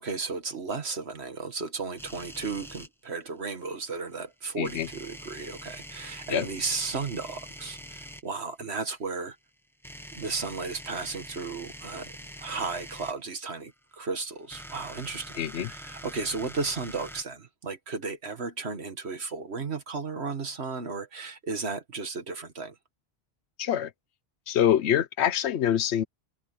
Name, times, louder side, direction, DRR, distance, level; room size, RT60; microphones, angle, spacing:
voice 1, 0.0-9.4 10.1-12.1 12.4-22.8, right 4 dB, 80° right, 2.0 m, -34 dB
sound 1, 2.0-2.9 4.6-8.2 9.8-13.1 14.3-17.2, equal, ahead, 0.9 m, -44 dB
voice 2, 4.6-4.9 6.3-6.5 15.4-15.7 23.6-23.9 24.5-26.0, left 10 dB, 90° left, 1.0 m, -25 dB
omnidirectional pair, 1.1 m